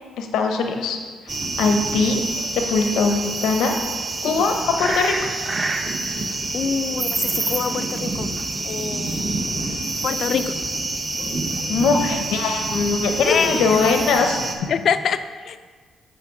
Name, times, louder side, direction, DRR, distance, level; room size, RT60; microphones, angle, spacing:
voice 1, 0.2-1.0 1.3-2.2 2.5-3.7 4.2-5.3 11.7-14.4, left 4 dB, 85° left, 4 dB, 0.7 m, -21 dB
sound 1, 1.3-14.6, right 2 dB, 30° right, 0.8 m, -27 dB
voice 2, 6.5-8.3 8.6-9.3 10.0-10.5 13.2-13.9 14.7-15.2 15.5-15.6, left 7 dB, 60° left, 11 dB, 0.4 m, -25 dB
8.9 x 3.6 x 4.8 m, 1.5 s
cardioid pair, 90°, 0 cm